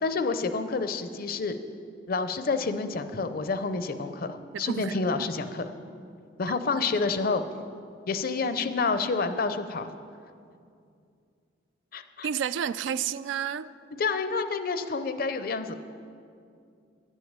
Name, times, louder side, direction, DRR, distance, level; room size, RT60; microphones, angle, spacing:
voice 1, 0.0-1.6 2.1-5.7 6.4-7.4 8.1-9.9 11.9-12.3 14.0-15.8, left 4 dB, 55° left, 10 dB, 0.6 m, -28 dB
voice 2, 4.5-5.0 12.2-13.7, right 8 dB, 80° right, 15 dB, 0.3 m, -30 dB
11.0 x 6.4 x 8.7 m, 2.4 s
head